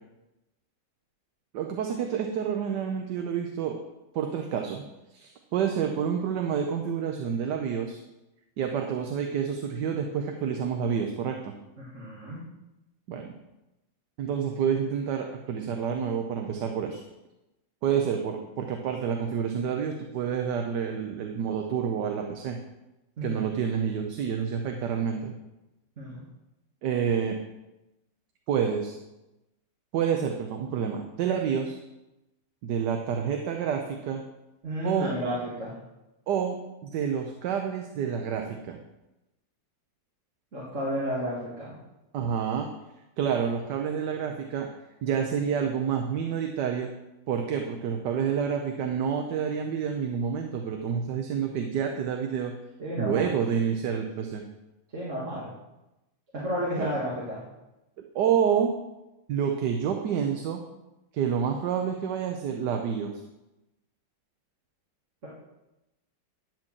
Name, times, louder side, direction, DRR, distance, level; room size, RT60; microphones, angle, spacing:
voice 1, 1.5-3.8 4.1-4.8 5.1-8.0 8.6-11.5 13.1-13.3 14.2-17.0 17.8-22.6 23.2-25.3 26.8-27.4 28.5-29.0 29.9-31.8 32.6-34.2 34.8-35.1 36.3-36.6 36.8-38.8 42.1-42.7 43.2-44.7 45.0-46.9 47.3-52.5 53.0-54.4 56.8-56.9 58.1-58.8 59.3-60.6 61.1-63.1, right 7 dB, 70° right, 3 dB, 1.3 m, -28 dB
voice 2, 11.8-12.4 23.2-23.4 26.0-26.2 34.6-35.7 40.5-41.7 52.8-53.3 54.9-55.5 56.3-57.4, equal, 40° right, -7 dB, 2.1 m, -32 dB
10.5 x 4.5 x 7.2 m, 0.97 s
omnidirectional pair, 2.0 m